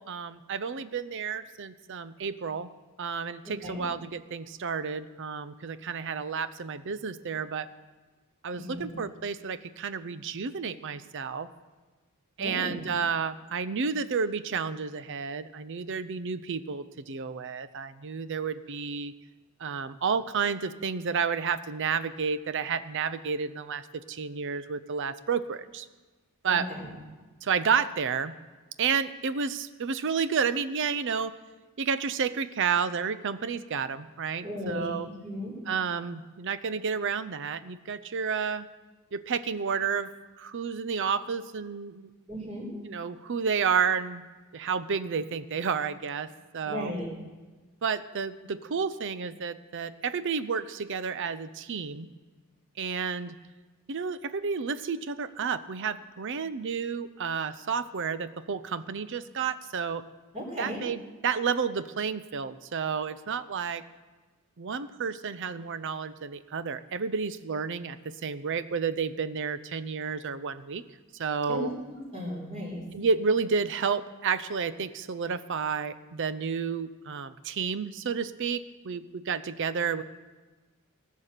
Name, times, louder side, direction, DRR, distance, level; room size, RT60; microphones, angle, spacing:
voice 1, 0.0-2.7 3.0-7.7 8.4-11.5 12.4-19.1 19.6-25.9 26.4-26.7 27.4-28.3 28.8-31.3 31.8-35.1 35.7-38.7 39.1-40.1 40.4-42.1 42.9-44.2 44.5-46.3 46.5-46.9 47.8-52.1 52.8-53.4 53.9-60.0 60.6-63.8 64.6-70.8 71.1-71.7 72.9-80.0, right 6 dB, 55° right, 14 dB, 0.5 m, -31 dB
voice 2, 8.5-8.9 12.4-12.8 26.5-26.9 34.4-34.9 35.2-35.5 42.3-42.7 46.7-47.1 60.3-60.8 71.5-72.8, left 1 dB, 30° right, -2 dB, 3.9 m, -36 dB
17.5 x 7.4 x 6.6 m, 1.3 s
head